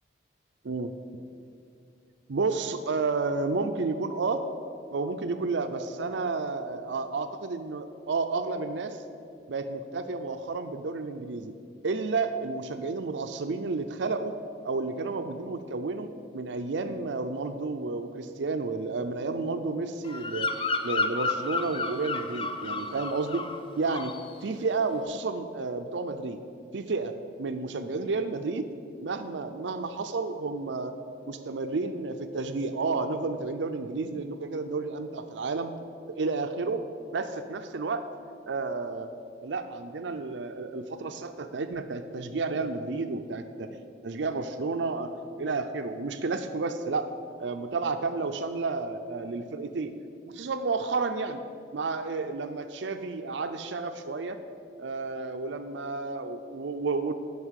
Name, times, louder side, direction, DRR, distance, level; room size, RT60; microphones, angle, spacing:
voice 1, 2.3-4.4 4.9-9.0 9.5-11.5 11.8-14.3 14.6-20.5 20.8-23.5 23.7-24.1 24.4-26.4 26.7-28.6 29.0-30.9 31.3-35.7 36.0-36.8 37.1-38.0 38.5-39.1 39.4-43.7 44.0-47.1 47.4-49.9 50.3-51.4 51.7-54.4 54.8-57.1, right 3 dB, 85° right, 8 dB, 0.5 m, -31 dB
Bird vocalization bird call bird song, 20.0-23.6 23.8-24.3, left 3 dB, 30° left, 0.5 m, -31 dB
9.5 x 5.5 x 8.1 m, 2.4 s
head